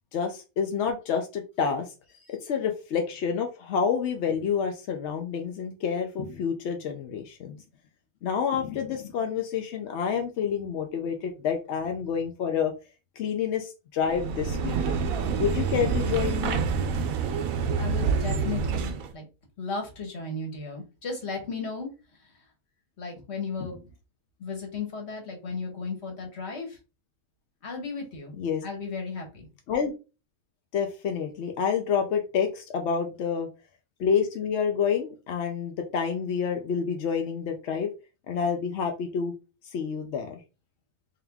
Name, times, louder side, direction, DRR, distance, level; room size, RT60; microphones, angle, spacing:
voice 1, 0.1-1.9 2.4-7.6 8.2-12.7 13.2-15.1 15.4-16.6 23.6-23.7 28.4-28.6 29.7-29.9 30.7-33.5 34.0-37.9 38.3-39.3 39.7-40.4, left 7 dB, 65° left, 4 dB, 0.7 m, -28 dB
sound 1, 14.0-19.1, right 5 dB, 70° right, 1.0 m, -27 dB
voice 2, 17.8-19.2 19.6-21.9 23.0-23.8 24.4-26.8 27.6-28.3 28.6-29.5, left 4 dB, 45° left, 2 dB, 1.4 m, -35 dB
3.7 x 2.8 x 3.4 m, 0.30 s
omnidirectional pair, 1.7 m